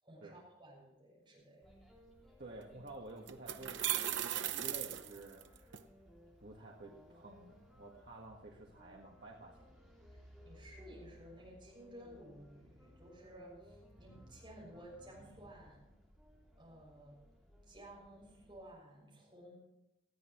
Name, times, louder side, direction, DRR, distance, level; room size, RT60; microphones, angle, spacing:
voice 1, 0.0-1.6 10.1-15.9 16.6-17.2 17.6-19.6, right 1 dB, 25° right, -3 dB, 6.7 m, -55 dB
sound 1, 1.6-18.7, equal, ahead, 2.8 m, -61 dB
voice 2, 2.4-5.8 6.4-9.8, right 2 dB, 60° right, -2 dB, 1.7 m, -51 dB
sound 2, 2.6-2.7 3.3-5.8, right 11 dB, 80° right, 0.7 m, -37 dB
19.0 x 13.5 x 3.1 m, 0.89 s
head